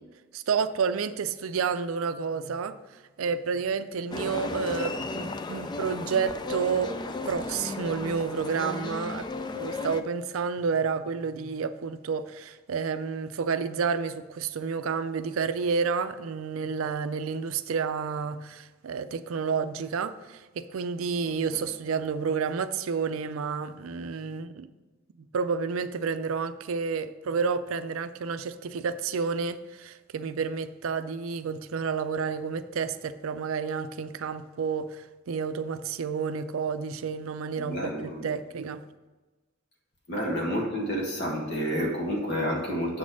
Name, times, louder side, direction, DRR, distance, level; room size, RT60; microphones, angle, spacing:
voice 1, 0.3-2.8 3.2-9.3 9.5-24.7 25.2-38.8, right 5 dB, 75° right, 0.4 m, -30 dB
sound 1, 4.1-10.0, left 3 dB, 20° left, 0.3 m, -34 dB
voice 2, 37.6-38.2 40.1-43.0, equal, 55° left, 1.7 m, -29 dB
7.5 x 4.2 x 6.1 m
head